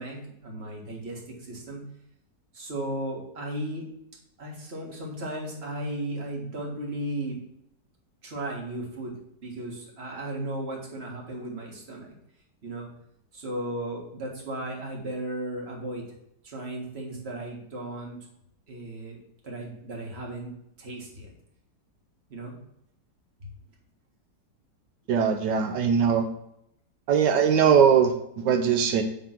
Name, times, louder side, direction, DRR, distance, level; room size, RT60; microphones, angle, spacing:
voice 1, 0.0-1.8 2.5-3.9 4.4-7.4 8.2-9.1 9.4-12.1 12.6-12.9 13.3-16.0 16.4-18.2 18.7-19.2 19.4-20.5 20.8-21.3 22.3-22.6, right 1 dB, 35° right, -1 dB, 1.9 m, -35 dB
voice 2, 25.1-26.2 27.1-29.0, right 7 dB, 85° right, 5 dB, 1.4 m, -21 dB
8.7 x 3.6 x 5.9 m, 0.77 s
omnidirectional pair, 1.8 m